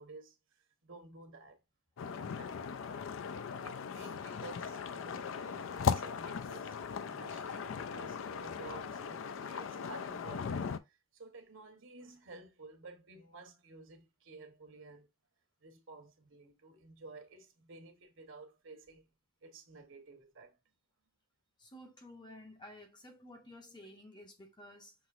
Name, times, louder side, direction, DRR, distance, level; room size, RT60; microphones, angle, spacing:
voice 1, 0.0-1.6 2.3-2.6 3.6-6.8 7.0-15.1 15.6-19.1 19.4-20.6, right 3 dB, 60° right, 1.1 m, -53 dB
sound 1, 2.0-10.8, left 6 dB, 60° left, 0.4 m, -38 dB
voice 2, 21.6-24.9, left 1 dB, 20° left, 0.7 m, -53 dB
5.9 x 3.0 x 2.5 m
head